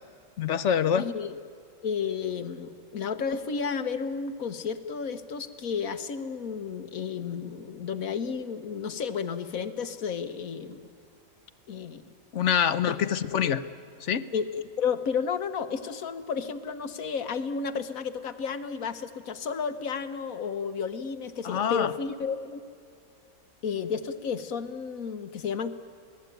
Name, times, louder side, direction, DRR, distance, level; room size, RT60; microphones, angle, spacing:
voice 1, 0.4-1.1 12.3-13.6 14.0-14.3 21.4-21.9, left 8 dB, 60° left, 14 dB, 1.0 m, -25 dB
voice 2, 0.9-1.3 1.8-10.8 11.7-12.1 12.9-13.0 13.2-13.6 14.3-22.6 23.6-25.7, left 6 dB, 75° left, 10 dB, 1.6 m, -32 dB
28.0 x 19.0 x 9.2 m, 2.4 s
omnidirectional pair, 1.5 m